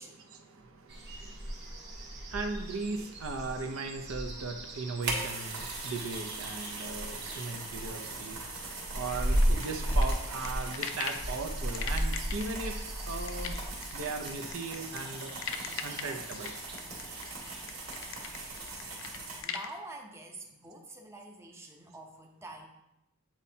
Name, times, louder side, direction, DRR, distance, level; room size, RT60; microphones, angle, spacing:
voice 1, 0.0-8.6 8.9-13.6 13.9-15.3 15.8-16.5, right 3 dB, 70° right, 4 dB, 0.7 m, -38 dB
sound 1, 0.9-18.7, equal, 50° right, 1.2 m, -36 dB
sound 2, 5.0-19.4, right 3 dB, 85° right, 1.9 m, -42 dB
sound 3, 9.0-11.3 11.7-19.7, left 7 dB, 60° left, 0.5 m, -40 dB
voice 2, 19.0-22.7, right 2 dB, 10° right, 1 dB, 0.6 m, -47 dB
8.9 x 4.2 x 2.8 m, 0.89 s
head